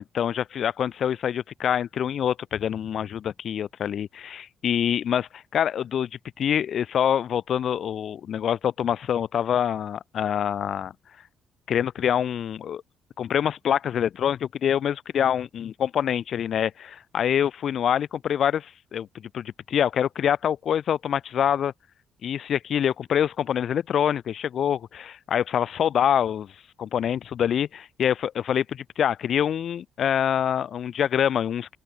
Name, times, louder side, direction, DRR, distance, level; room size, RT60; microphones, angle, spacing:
voice 1, 0.0-6.1 6.4-10.9 11.7-12.8 13.2-21.7 22.2-26.5 26.8-31.8, left 9 dB, 60° left, 7.1 m, -25 dB
open air
cardioid pair, 90°, 0 cm